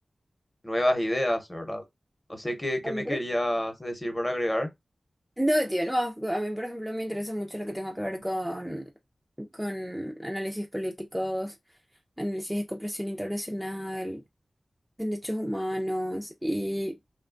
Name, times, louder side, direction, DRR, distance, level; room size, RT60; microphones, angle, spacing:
voice 1, 0.6-1.8 2.3-4.7, left 1 dB, 20° left, 0.8 m, -28 dB
voice 2, 2.8-3.2 5.4-8.9 9.4-11.5 12.2-14.2 15.0-17.0, equal, 5° right, 0.4 m, -31 dB
2.8 x 2.2 x 2.4 m
wide cardioid pair, 65°, 0 cm